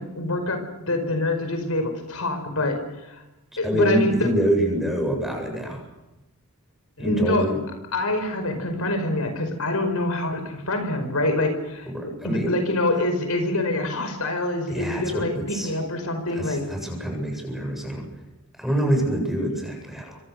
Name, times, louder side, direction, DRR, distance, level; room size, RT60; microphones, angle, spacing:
voice 1, 0.0-3.2 3.6-4.3 7.0-7.5 7.9-11.9 12.2-16.6, left 1 dB, 75° left, 6 dB, 5.2 m, -25 dB
voice 2, 3.6-5.8 7.0-7.6 11.9-12.6 14.7-15.7 16.3-18.1 18.6-20.2, right 1 dB, ahead, 2 dB, 7.8 m, -26 dB
27.0 x 25.5 x 6.7 m, 0.97 s
head